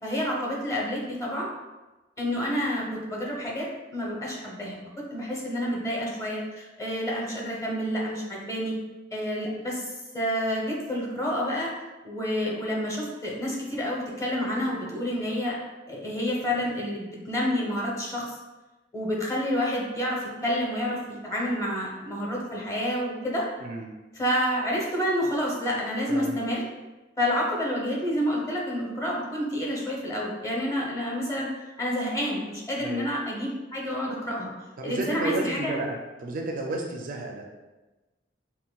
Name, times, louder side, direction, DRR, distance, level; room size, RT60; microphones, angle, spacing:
voice 1, 0.0-1.5 2.2-8.8 9.1-9.9 10.1-11.7 12.0-15.6 15.9-18.4 18.9-23.5 24.2-26.6 27.2-31.5 31.8-34.5 34.8-35.8, equal, 15° left, -3 dB, 0.7 m, -29 dB
voice 2, 23.6-23.9 26.1-26.4 32.8-33.1 34.8-37.5, right 2 dB, 45° right, 1 dB, 0.4 m, -32 dB
5.6 x 2.2 x 2.3 m, 1.1 s
head